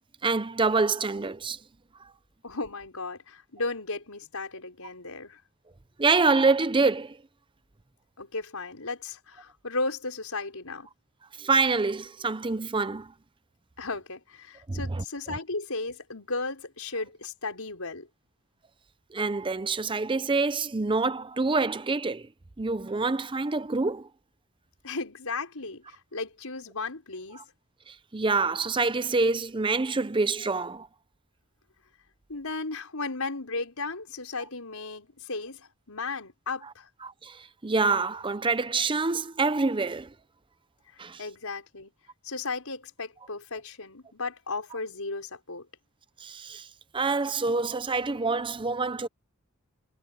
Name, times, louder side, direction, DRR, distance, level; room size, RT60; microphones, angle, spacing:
voice 1, 0.2-1.6 6.0-7.2 11.4-13.1 14.7-15.0 19.1-22.3 22.6-24.1 27.4-27.5 27.9-30.9 37.0-40.1 41.0-41.2 46.2-46.7 46.9-49.1, right 3 dB, 25° right, 0.6 m, -26 dB
voice 2, 2.4-5.4 8.2-10.9 13.8-18.1 24.8-27.4 32.3-36.9 41.2-41.9 42.2-45.7, left 3 dB, 85° left, 4.9 m, -35 dB
head